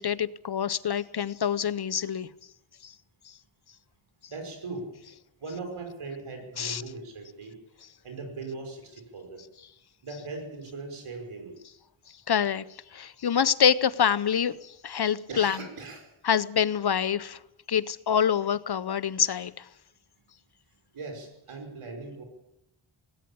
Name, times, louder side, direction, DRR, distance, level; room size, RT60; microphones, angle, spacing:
voice 1, 0.0-2.3 2.8-2.9 6.6-6.8 12.3-12.6 12.9-15.6 16.2-17.4 17.7-19.7, left 8 dB, 50° left, 0.7 m, -26 dB
voice 2, 4.3-4.8 5.4-7.5 8.0-9.4 10.0-11.5 15.3-16.1 20.9-22.2, right 3 dB, 80° right, 5.6 m, -39 dB
19.0 x 17.0 x 8.7 m
wide cardioid pair, 140°, 50 cm